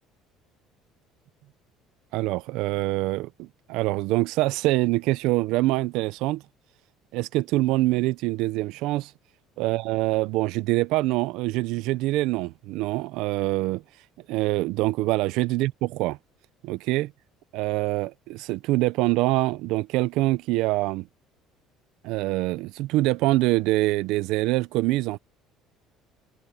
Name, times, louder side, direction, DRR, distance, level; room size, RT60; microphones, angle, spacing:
voice 1, 2.1-6.4 7.1-9.1 9.6-13.8 14.3-16.2 16.6-17.1 17.5-21.1 22.0-25.2, right 19 dB, 70° right, 0.6 m, -25 dB
cardioid pair, 170°, 0 cm